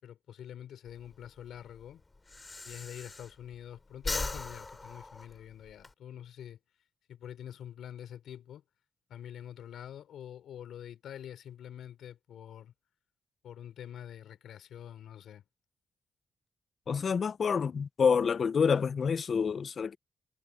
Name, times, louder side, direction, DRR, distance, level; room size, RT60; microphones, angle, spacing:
voice 1, 0.0-2.0 2.6-6.6 7.1-8.6 9.1-12.7 13.4-15.4, left 10 dB, 90° left, 5.5 m, -46 dB
Breathing, 0.9-3.6 3.9-5.9, left 3 dB, 25° left, 3.4 m, -39 dB
voice 2, 16.9-20.0, left 6 dB, 50° left, 0.4 m, -27 dB
cardioid pair, 105°, 0 cm